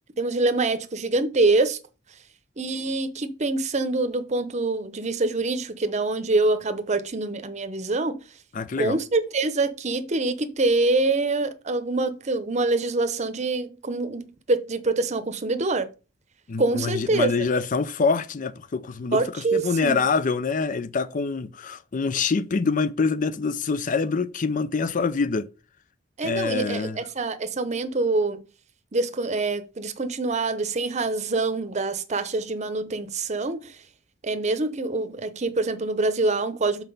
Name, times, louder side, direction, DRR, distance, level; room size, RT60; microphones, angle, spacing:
voice 1, 0.2-1.8 2.6-8.2 8.8-15.9 16.6-17.5 19.1-20.0 26.2-28.4 28.9-33.7 34.2-36.8, right 3 dB, 35° right, 0.8 m, -25 dB
voice 2, 8.5-9.0 16.5-25.5 26.2-27.0, left 4 dB, 45° left, 0.5 m, -25 dB
5.9 x 4.4 x 5.3 m
head